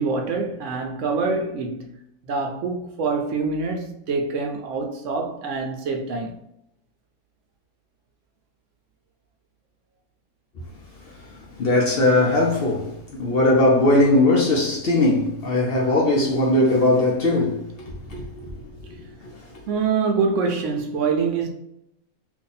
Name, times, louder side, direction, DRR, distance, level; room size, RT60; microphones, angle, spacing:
voice 1, 0.0-2.0 2.3-6.4 19.7-21.5, right 4 dB, 70° right, 0.8 m, -25 dB
voice 2, 11.1-18.5 19.2-19.3, left 2 dB, 55° left, 0.7 m, -20 dB
2.7 x 2.6 x 3.9 m
omnidirectional pair, 1.5 m